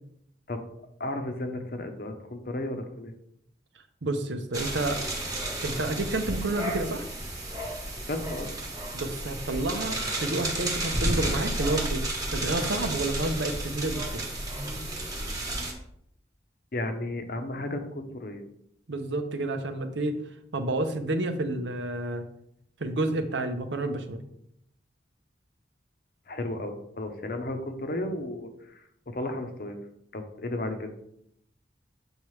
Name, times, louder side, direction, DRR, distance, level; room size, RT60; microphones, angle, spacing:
voice 1, 1.0-3.1 8.1-8.5 16.7-18.4 26.3-29.8 30.1-30.9, left 1 dB, 55° left, 6 dB, 0.8 m, -34 dB
voice 2, 4.0-5.0 5.6-7.1 8.9-12.0 12.3-14.2 18.9-20.2 20.5-22.3 22.8-24.2, right 2 dB, 85° right, 7 dB, 0.7 m, -30 dB
sound 1, 4.5-15.7, right 1 dB, 20° right, 1.1 m, -32 dB
7.2 x 4.9 x 3.2 m, 0.74 s
head